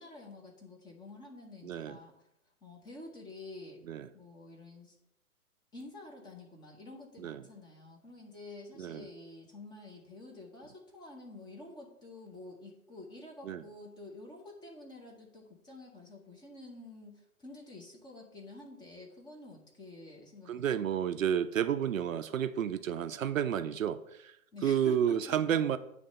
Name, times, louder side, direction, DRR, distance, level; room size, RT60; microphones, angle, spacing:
voice 1, 0.0-2.1 2.6-3.8 4.1-5.0 5.7-21.0 24.5-25.4, left 2 dB, 10° left, 0 dB, 0.9 m, -49 dB
voice 2, 1.6-2.0 3.9-4.1 7.2-7.4 8.8-9.1 13.4-13.6 20.5-24.4 24.6-25.8, right 9 dB, 65° right, 11 dB, 0.6 m, -31 dB
8.9 x 3.3 x 6.4 m, 0.81 s
figure-of-eight pair, 130°, 43 cm